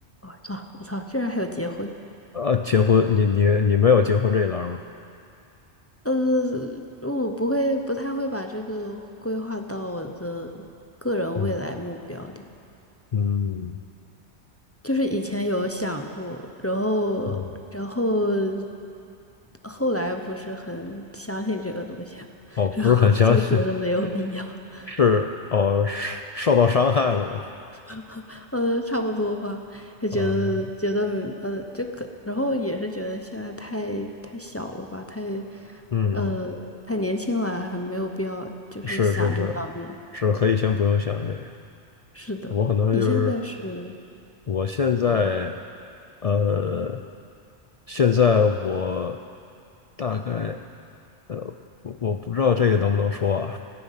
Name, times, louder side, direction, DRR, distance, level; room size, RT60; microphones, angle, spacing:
voice 1, 0.2-1.9 6.0-10.7 11.0-12.4 14.8-17.4 17.7-18.7 19.6-24.9 27.7-35.8 36.1-39.9 42.1-42.6 42.9-43.9 45.1-45.2, left 1 dB, 15° left, 4 dB, 0.6 m, -28 dB
voice 2, 2.3-4.8 11.4-11.5 13.1-13.8 17.3-17.5 22.6-23.6 24.9-27.5 30.2-30.3 35.9-36.3 38.8-39.6 40.1-41.5 42.5-43.4 44.5-45.5 46.2-47.0 47.9-49.2 50.0-50.6 51.3-51.5 51.8-53.6, left 6 dB, 55° left, 6 dB, 0.4 m, -22 dB
17.0 x 12.5 x 5.7 m, 2.5 s
omnidirectional pair, 1.2 m